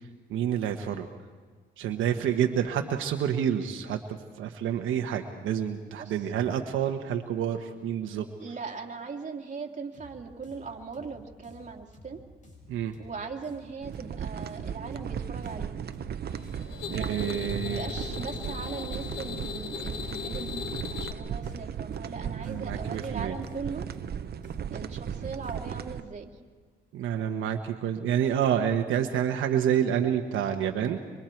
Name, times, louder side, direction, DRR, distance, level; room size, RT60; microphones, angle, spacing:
voice 1, 0.3-1.1 1.8-8.3 12.7-13.0 16.9-17.8 22.2-23.3 26.9-31.0, right 9 dB, 80° right, 4 dB, 1.2 m, -28 dB
voice 2, 8.4-12.2 13.0-15.8 16.9-23.9 24.7-26.3, right 4 dB, 40° right, 1 dB, 2.5 m, -39 dB
sound 1, 9.9-25.8, left 1 dB, 40° left, 6.6 m, -52 dB
sound 2, 13.8-26.0, right 8 dB, 55° right, 1.0 m, -36 dB
sound 3, 16.3-21.1, left 8 dB, 75° left, 1.4 m, -38 dB
26.5 x 24.5 x 4.6 m, 1.5 s
cardioid pair, 90°, 20 cm